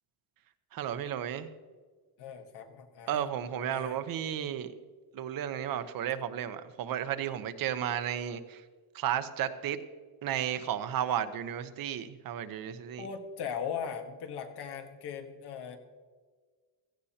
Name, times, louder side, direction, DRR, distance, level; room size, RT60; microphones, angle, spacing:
voice 1, 0.7-1.5 3.1-4.7 5.1-8.6 8.9-9.8 10.2-13.1, right 10 dB, 60° right, 10 dB, 0.9 m, -33 dB
voice 2, 2.2-3.3 3.6-4.0 13.0-15.8, left 7 dB, 85° left, 5 dB, 1.6 m, -39 dB
16.5 x 14.0 x 2.9 m, 1.5 s
cardioid pair, 160°, 39 cm